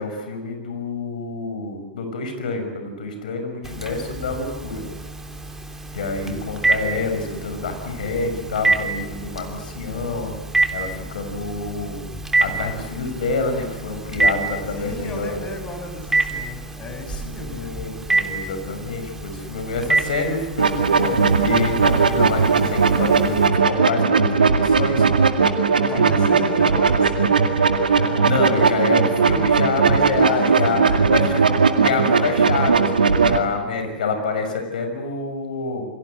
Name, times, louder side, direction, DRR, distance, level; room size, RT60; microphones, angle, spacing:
voice 1, 0.0-4.8 5.9-10.3 10.7-12.0 12.4-15.4 17.1-25.1 25.9-26.7 28.2-30.9 31.1-31.2 31.8-35.8, left 3 dB, 60° left, 6 dB, 6.5 m, -27 dB
Telephone, 3.6-23.5, right 3 dB, 5° right, 3.1 m, -27 dB
voice 2, 14.7-17.9 25.7-27.6 27.9-28.6 30.2-31.3 31.8-32.0, left 2 dB, 25° left, 5 dB, 6.5 m, -35 dB
sound 1, 20.6-33.4, right 5 dB, 75° right, 2.1 m, -18 dB
29.0 x 23.5 x 8.1 m, 1.1 s
figure-of-eight pair, 100°, 5 cm